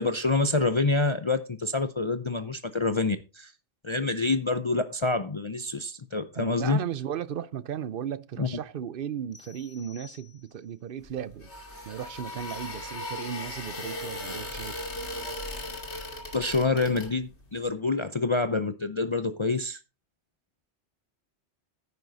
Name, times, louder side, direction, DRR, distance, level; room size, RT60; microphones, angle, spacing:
voice 1, 0.0-3.5 3.8-6.8 8.4-8.5 16.3-19.8, left 3 dB, 35° left, 0.5 m, -27 dB
voice 2, 6.4-11.5 11.8-14.8, right 9 dB, 60° right, 0.8 m, -36 dB
sound 1, 9.3-10.8, left 7 dB, 55° left, 1.7 m, -53 dB
sound 2, 11.0-17.5, left 1 dB, 80° left, 2.5 m, -37 dB
9.7 x 9.6 x 4.0 m
omnidirectional pair, 1.1 m